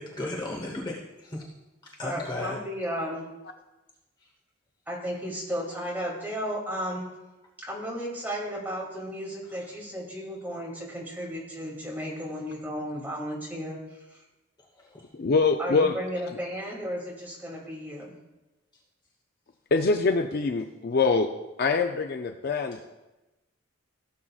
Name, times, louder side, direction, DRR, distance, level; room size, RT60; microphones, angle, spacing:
voice 1, 0.0-1.4 2.0-2.6 14.8-15.1, left 1 dB, 20° left, -1 dB, 1.0 m, -35 dB
voice 2, 2.0-3.3 4.9-7.1 7.6-13.8 14.1-14.2 15.6-18.2, equal, 10° right, -4 dB, 2.5 m, -34 dB
voice 3, 15.1-16.0 19.7-21.3 21.6-22.8, left 4 dB, 50° left, 6 dB, 0.4 m, -24 dB
16.0 x 7.5 x 2.4 m, 1.0 s
head